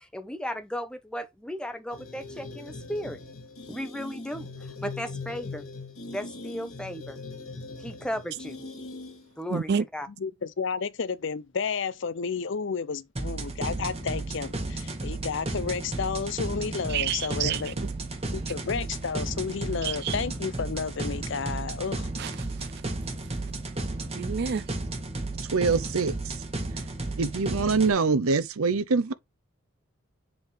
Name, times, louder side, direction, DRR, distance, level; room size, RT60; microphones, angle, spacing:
voice 1, 0.0-3.2 3.7-5.6 6.1-7.2 7.8-8.6 9.4-10.1, equal, 5° left, 0.8 m, -35 dB
sound 1, 1.9-9.4, left 3 dB, 75° left, 2.4 m, -41 dB
voice 2, 9.5-9.8 16.9-17.9 19.8-20.2 22.2-22.7 24.1-24.6, right 7 dB, 50° right, 0.4 m, -29 dB
voice 3, 10.2-17.7 18.5-22.1, left 5 dB, 60° left, 0.5 m, -31 dB
sound 2, 13.2-27.9, right 2 dB, 30° right, 1.7 m, -33 dB
voice 4, 25.5-26.4 27.2-29.1, right 4 dB, 85° right, 0.7 m, -24 dB
7.7 x 3.7 x 3.3 m
head